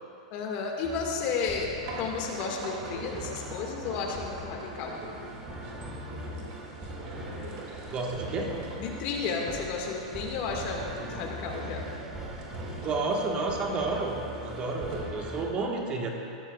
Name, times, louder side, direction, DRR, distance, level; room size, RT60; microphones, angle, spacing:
voice 1, 0.3-5.0 8.8-11.9, left 5 dB, 50° left, 0 dB, 1.9 m, -33 dB
sound 1, 0.8-15.5, equal, 15° right, 1.4 m, -43 dB
sound 2, 1.8-15.1, right 2 dB, 55° right, 2.6 m, -41 dB
voice 2, 7.8-8.6 12.8-16.1, right 3 dB, 35° right, 0 dB, 1.5 m, -31 dB
14.0 x 13.5 x 2.4 m, 2.7 s
hypercardioid pair, 120°, 3 cm